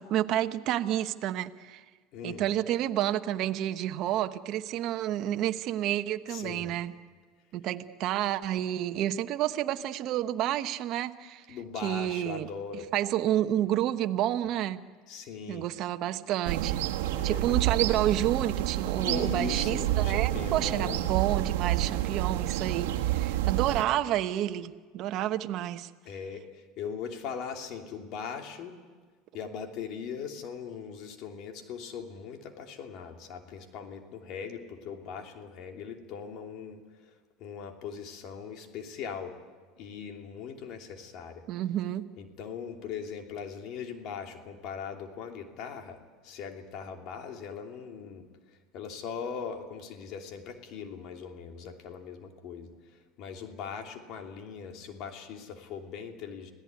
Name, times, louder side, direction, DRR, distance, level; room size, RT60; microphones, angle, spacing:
voice 1, 0.0-1.8 2.2-6.9 7.5-11.6 11.8-12.5 12.9-14.8 15.5-16.8 17.2-25.9 41.5-42.1, right 12 dB, 55° right, 9 dB, 1.1 m, -30 dB
voice 2, 2.1-2.5 6.3-6.7 11.5-12.9 15.1-15.7 17.1-17.4 19.0-21.0 26.0-28.8 29.3-39.4 39.8-41.4 42.2-48.3 48.7-52.7 53.2-56.5, left 6 dB, 60° left, 4 dB, 3.0 m, -40 dB
sound 1, 16.4-23.8, right 14 dB, 90° right, 1.3 m, -29 dB
26.0 x 17.0 x 9.6 m, 1.5 s
supercardioid pair, 115°, 0 cm